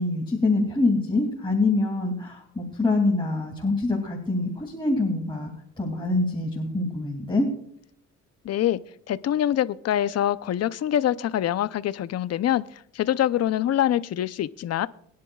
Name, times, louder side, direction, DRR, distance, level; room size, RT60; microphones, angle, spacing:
voice 1, 0.0-5.5 5.8-7.5, left 2 dB, 15° left, 2.6 m, -25 dB
voice 2, 8.4-8.8 9.1-14.9, left 11 dB, 55° left, 0.6 m, -25 dB
23.0 x 10.5 x 2.4 m
cardioid pair, 90°, 30 cm